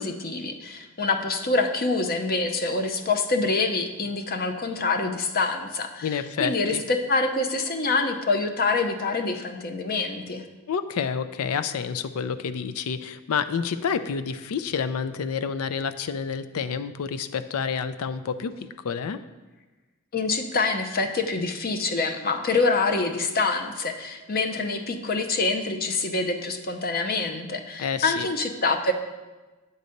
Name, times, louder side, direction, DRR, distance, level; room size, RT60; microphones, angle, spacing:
voice 1, 0.0-10.4 20.1-28.9, left 3 dB, 45° left, 6 dB, 0.7 m, -26 dB
voice 2, 6.0-6.8 10.7-19.2 27.8-28.3, left 6 dB, 80° left, 12 dB, 0.4 m, -29 dB
9.2 x 4.1 x 6.5 m, 1.2 s
head